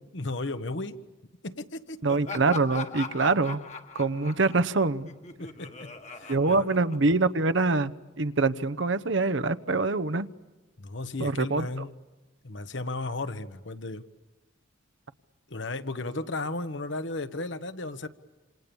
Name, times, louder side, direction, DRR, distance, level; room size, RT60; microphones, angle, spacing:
voice 1, 0.1-1.0 1.4-2.0 5.4-5.9 6.2-6.7 10.8-12.0 12.4-14.1 15.5-18.1, left 2 dB, 65° left, 10 dB, 1.3 m, -34 dB
voice 2, 2.0-3.6 3.9-5.1 6.3-10.3 11.2-11.7, right 3 dB, 70° right, 12 dB, 0.9 m, -25 dB
Laughter, 2.1-7.5, left 5 dB, 35° left, 1.4 m, -41 dB
27.5 x 27.5 x 7.1 m, 1.2 s
head